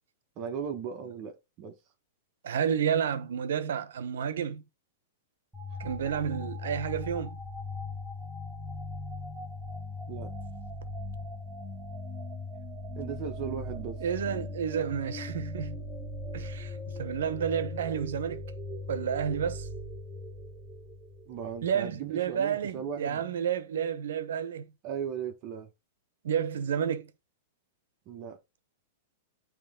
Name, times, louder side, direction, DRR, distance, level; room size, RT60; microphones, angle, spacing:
voice 1, 0.4-1.8 5.8-5.9 10.1-10.3 12.9-14.0 21.3-23.2 24.8-25.7 28.1-28.4, right 7 dB, 35° right, 1.2 m, -37 dB
voice 2, 2.4-4.6 5.8-7.4 14.0-15.8 16.3-18.4 18.9-19.7 21.6-24.7 26.2-27.1, right 8 dB, 80° right, 1.0 m, -30 dB
sound 1, 5.5-21.9, left 2 dB, 5° right, 1.4 m, -39 dB
9.0 x 3.2 x 3.7 m
hypercardioid pair, 150°, 0 cm